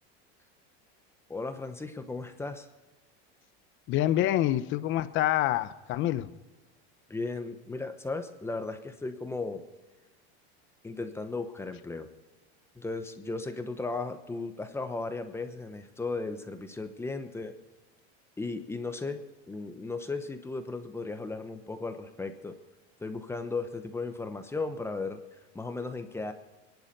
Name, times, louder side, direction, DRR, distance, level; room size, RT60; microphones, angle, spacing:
voice 1, 1.3-2.7 7.1-9.6 10.8-12.1 12.8-17.5 18.4-22.5 23.0-25.2 25.5-26.3, left 3 dB, 10° left, 7 dB, 0.9 m, -36 dB
voice 2, 3.9-6.3, left 13 dB, 40° left, 14 dB, 0.8 m, -26 dB
24.0 x 10.5 x 5.3 m, 1.2 s
supercardioid pair, 150°, 32 cm